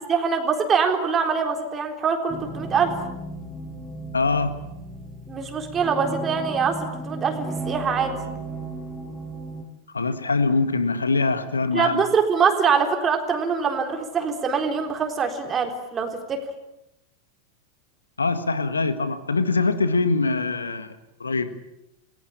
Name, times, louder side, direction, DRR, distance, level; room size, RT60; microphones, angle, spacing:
voice 1, 0.1-2.9 5.3-8.1 11.7-16.4, right 6 dB, 25° right, 4 dB, 4.0 m, -23 dB
sound 1, 2.3-9.6, right 2 dB, 5° left, 6.3 m, -35 dB
voice 2, 4.1-4.6 9.9-12.0 18.2-21.5, left 3 dB, 75° left, 12 dB, 1.6 m, -23 dB
28.5 x 20.5 x 8.6 m, 0.89 s
figure-of-eight pair, 90°, 0 cm